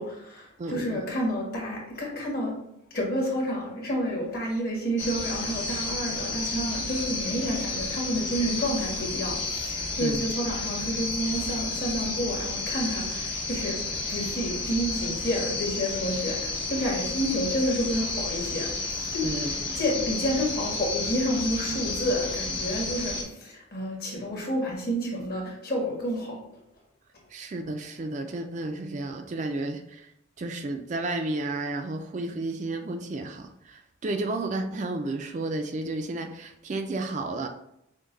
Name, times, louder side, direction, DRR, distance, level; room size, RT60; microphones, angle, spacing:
voice 1, 0.0-2.5 2.9-26.4, equal, 50° left, -2 dB, 1.5 m, -30 dB
voice 2, 0.6-1.0 10.0-10.2 19.2-19.8 27.3-30.1 30.4-37.5, right 2 dB, 35° right, 5 dB, 0.3 m, -32 dB
sound 1, 5.0-23.2, left 3 dB, 75° left, 1.5 m, -31 dB
6.2 x 2.2 x 3.9 m, 0.79 s
head